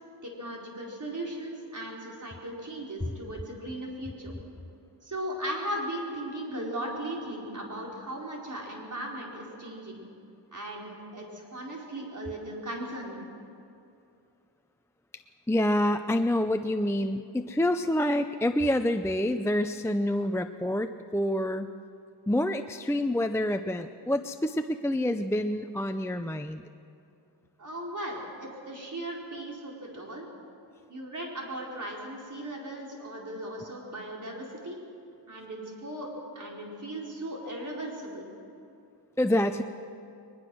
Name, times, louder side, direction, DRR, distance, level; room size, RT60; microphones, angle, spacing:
voice 1, 0.2-4.3 5.0-10.0 10.5-13.2 27.6-30.3 30.9-34.8 35.3-36.1 36.3-38.2, right 1 dB, 45° right, -2 dB, 4.5 m, -37 dB
voice 2, 15.5-21.7 22.3-26.6 39.2-39.6, left 1 dB, 5° left, 7 dB, 0.5 m, -27 dB
22.0 x 20.5 x 6.3 m, 2.5 s
wide cardioid pair, 120°, 43 cm